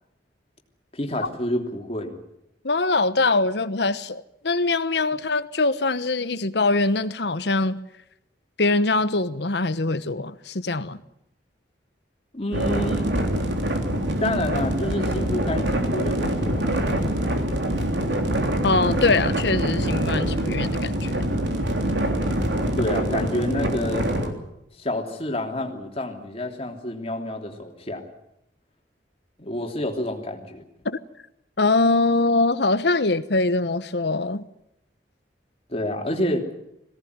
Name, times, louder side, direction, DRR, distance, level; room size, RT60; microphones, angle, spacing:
voice 1, 0.9-2.2 12.3-13.1 14.2-16.8 22.8-24.1 24.8-28.0 29.4-30.6 35.7-36.5, left 1 dB, 35° left, 2 dB, 3.3 m, -28 dB
voice 2, 2.6-7.8 8.6-11.0 18.6-21.1 30.8-31.0 31.6-34.5, left 3 dB, 65° left, 13 dB, 1.1 m, -23 dB
sound 1, 12.5-24.3, right 1 dB, 80° right, 3.5 m, -24 dB
22.0 x 17.5 x 9.6 m, 0.82 s
head